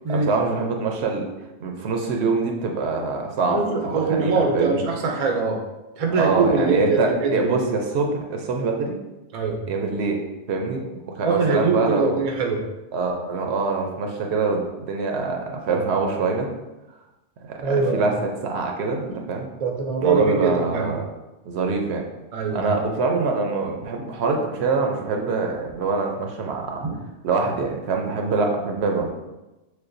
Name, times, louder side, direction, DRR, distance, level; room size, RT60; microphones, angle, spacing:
voice 1, 0.1-1.2 1.6-4.8 6.1-8.9 9.7-10.2 10.5-12.2 12.9-16.5 17.4-19.5 20.0-21.1 21.5-22.0 22.5-26.8 27.2-29.1, right 4 dB, 70° right, 2 dB, 0.8 m, -24 dB
voice 2, 3.5-5.6 6.0-7.7 9.3-9.6 11.2-12.6 17.6-18.1 19.6-20.9 22.3-22.9 26.8-26.9, right 4 dB, 45° right, 1 dB, 0.5 m, -23 dB
6.5 x 2.2 x 2.5 m, 1.0 s
omnidirectional pair, 1.2 m